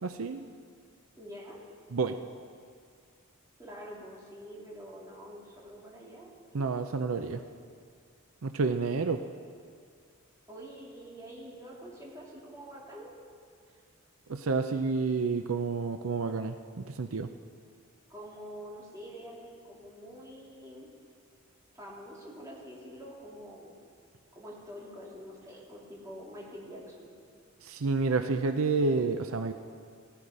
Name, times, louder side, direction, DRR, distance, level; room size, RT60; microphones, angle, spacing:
voice 1, 0.0-0.5 1.9-2.2 6.5-7.4 8.4-9.2 14.3-17.3 27.6-29.5, right 4 dB, 75° right, 8 dB, 0.6 m, -29 dB
voice 2, 1.2-1.6 3.6-6.3 6.6-6.7 10.5-13.1 18.1-20.9 21.7-23.7 24.3-27.1, equal, 15° right, -5 dB, 3.5 m, -46 dB
16.5 x 15.5 x 5.5 m, 2.2 s
head